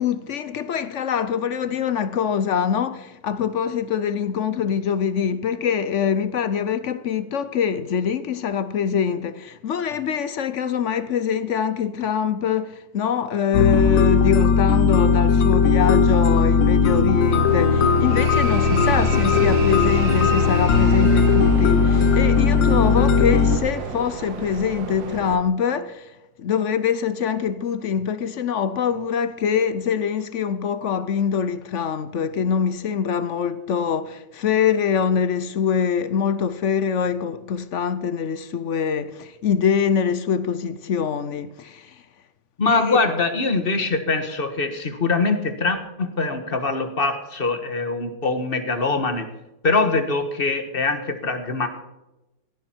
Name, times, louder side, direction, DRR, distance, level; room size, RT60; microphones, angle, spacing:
voice 1, 0.0-26.1 26.4-42.0 42.7-43.0, left 7 dB, 60° left, 0.8 m, -24 dB
sound 1, 13.5-23.6, left 5 dB, 85° left, 1.7 m, -18 dB
sound 2, 17.3-25.4, right 6 dB, 85° right, 2.0 m, -30 dB
voice 2, 42.6-49.3 49.6-51.7, left 3 dB, 35° left, 1.5 m, -23 dB
17.0 x 11.0 x 4.5 m
omnidirectional pair, 2.0 m